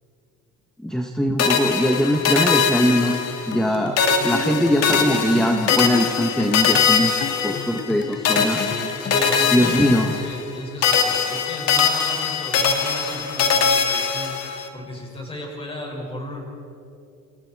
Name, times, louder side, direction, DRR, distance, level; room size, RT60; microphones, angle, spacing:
voice 1, 0.8-7.1 7.4-8.6 9.5-10.1, equal, ahead, 3 dB, 1.2 m, -21 dB
sound 1, 1.4-3.7 4.0-8.0 8.2-10.6 10.8-14.7, left 6 dB, 55° left, 2.3 m, -22 dB
sound 2, 3.5-10.1, left 8 dB, 35° left, 1.1 m, -34 dB
voice 2, 8.1-14.3 14.7-16.4, left 1 dB, 20° left, -1 dB, 6.7 m, -35 dB
28.5 x 28.5 x 4.8 m, 2.6 s
cardioid pair, 150°, 31 cm